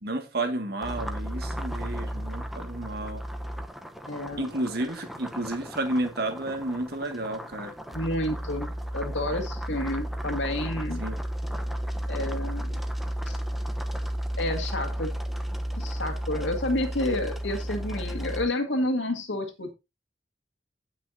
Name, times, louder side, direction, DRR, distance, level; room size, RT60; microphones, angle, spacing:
voice 1, 0.0-3.2 4.4-7.7 11.0-11.2, right 2 dB, 60° right, 2.1 m, -31 dB
sound 1, 0.8-18.5, equal, ahead, 0.9 m, -33 dB
voice 2, 4.1-4.5 7.9-11.0 12.1-12.8 13.3-13.4 14.4-15.1 15.8-19.7, left 1 dB, 90° left, 2.0 m, -30 dB
16.0 x 6.0 x 2.8 m
head